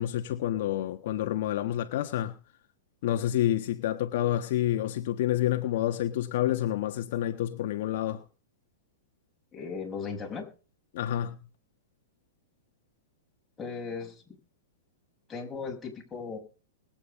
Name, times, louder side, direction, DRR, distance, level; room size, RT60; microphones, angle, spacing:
voice 1, 0.0-2.4 3.0-8.2 10.9-11.4, left 12 dB, 60° left, 1.3 m, -28 dB
voice 2, 9.5-10.5 13.6-14.2 15.3-16.4, left 5 dB, 15° left, 5.7 m, -37 dB
21.0 x 8.9 x 5.2 m
hypercardioid pair, 135°, 0 cm